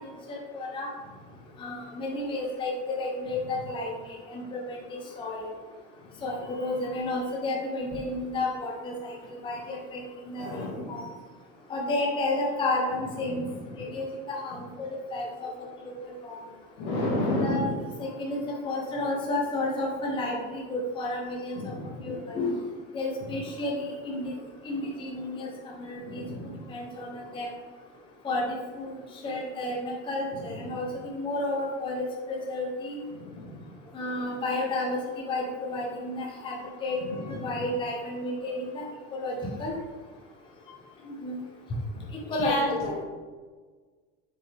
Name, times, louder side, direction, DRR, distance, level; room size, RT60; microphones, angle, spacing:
voice 1, 0.3-0.9 1.6-5.5 6.2-10.5 10.9-11.0 11.7-13.4 13.8-15.5 15.8-16.3 17.3-17.7 18.0-21.6 22.0-22.5 22.9-24.3 24.6-25.5 25.8-26.2 26.7-27.5 28.2-33.0 33.9-35.0 35.2-36.6 36.8-37.0 37.3-38.8 39.1-39.3 39.6-39.8 41.1-41.4 42.3-43.0, left 2 dB, 15° left, -2 dB, 0.8 m, -31 dB
voice 2, 10.4-11.0 13.3-13.4 13.7-13.8 16.8-17.8 21.5-22.1 23.2-23.4 26.0-26.6 30.4-30.8 33.1-33.7 37.0-37.6 42.3-42.7, left 1 dB, 75° left, -2 dB, 2.0 m, -32 dB
6.2 x 5.2 x 3.5 m, 1.4 s
cardioid pair, 165°, 29 cm